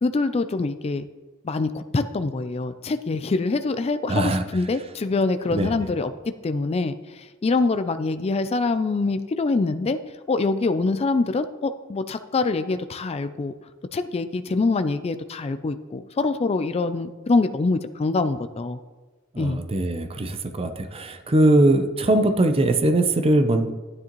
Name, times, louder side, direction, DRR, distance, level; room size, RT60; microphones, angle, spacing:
voice 1, 0.0-1.1 1.4-6.1 6.4-10.0 10.3-13.5 13.9-18.8 19.4-19.6 21.4-21.6, left 3 dB, 30° left, 10 dB, 0.3 m, -24 dB
voice 2, 4.1-4.4 5.5-5.7 19.3-23.7, right 1 dB, 25° right, 8 dB, 0.6 m, -21 dB
12.0 x 9.7 x 3.0 m, 1.3 s
head